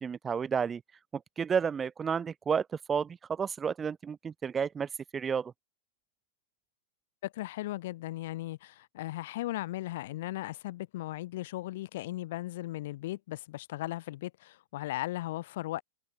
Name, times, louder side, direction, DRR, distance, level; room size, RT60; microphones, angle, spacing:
voice 1, 0.0-0.8 1.1-5.5, right 6 dB, 20° right, 1.1 m, -31 dB
voice 2, 7.2-15.8, left 16 dB, 65° left, 5.8 m, -37 dB
hypercardioid pair, 110°, 0 cm